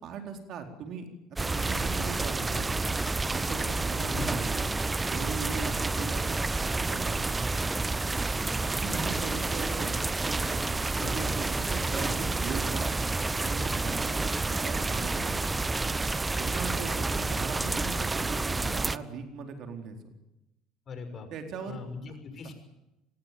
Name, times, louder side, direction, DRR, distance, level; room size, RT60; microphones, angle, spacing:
voice 1, 0.0-1.0 1.3-2.9 3.3-4.7 5.1-7.6 8.6-13.0 13.4-14.2 14.5-15.3 16.4-20.1 21.3-21.8, right 5 dB, 55° right, 4 dB, 4.1 m, -39 dB
sound 1, 1.4-19.0, right 3 dB, 20° right, 0.8 m, -29 dB
voice 2, 4.0-4.4 11.0-11.2 15.8-16.0 20.9-21.3 21.7-22.5, left 4 dB, 40° left, 8 dB, 6.0 m, -40 dB
sound 2, 6.8-7.0 8.4-9.1 10.6-10.7 11.2-11.3 11.5-11.6 13.0-13.6, left 3 dB, 20° left, 5.2 m, -51 dB
25.5 x 20.0 x 7.7 m, 0.93 s
hypercardioid pair, 65°, 0 cm